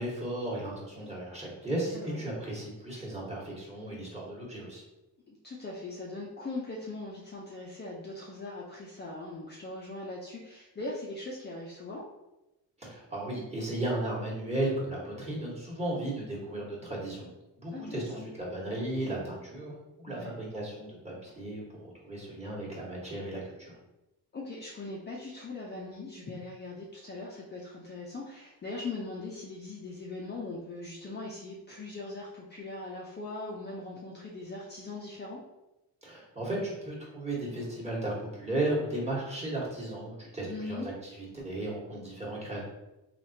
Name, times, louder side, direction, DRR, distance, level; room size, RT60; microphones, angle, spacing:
voice 1, 0.0-4.8 12.8-17.3 17.6-19.7 20.0-23.7 36.0-42.6, right 1 dB, 15° right, -5 dB, 1.3 m, -35 dB
voice 2, 5.3-12.0 17.7-18.3 20.1-20.4 24.3-35.4 40.5-40.9, left 2 dB, 25° left, -4 dB, 0.5 m, -40 dB
3.3 x 2.4 x 2.8 m, 0.96 s
cardioid pair, 80°, 43 cm